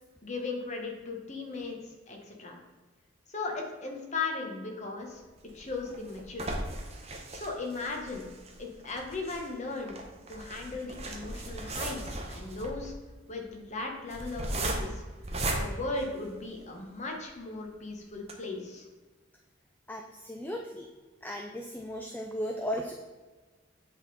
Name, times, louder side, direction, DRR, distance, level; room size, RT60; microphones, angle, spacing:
voice 1, 0.2-1.8 2.1-2.6 3.3-5.2 5.5-6.7 7.3-8.3 8.6-10.0 10.3-12.9 13.3-15.0 15.6-18.9, left 3 dB, 35° left, 1 dB, 1.0 m, -37 dB
sound 1, 5.4-16.8 17.3-17.4 17.7-17.8 18.2-18.3, right 2 dB, 30° right, 0.8 m, -37 dB
voice 2, 19.9-20.9 21.2-22.9, equal, 10° left, 2 dB, 0.3 m, -36 dB
8.0 x 3.7 x 4.1 m, 1.3 s
head